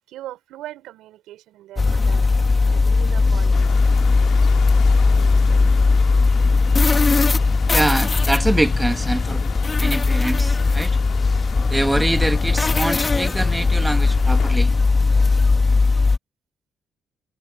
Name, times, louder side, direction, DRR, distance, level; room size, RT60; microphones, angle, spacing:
voice 1, 0.1-4.1, right 14 dB, 90° right, 5.7 m, -40 dB
sound 1, 1.8-16.2, left 3 dB, 30° left, 2.1 m, -18 dB
sound 2, 3.5-14.6, left 10 dB, 80° left, 2.1 m, -36 dB
voice 2, 7.7-9.4 9.8-11.0 11.7-14.7, right 1 dB, 10° right, 1.3 m, -24 dB
cardioid pair, 90°, 0 cm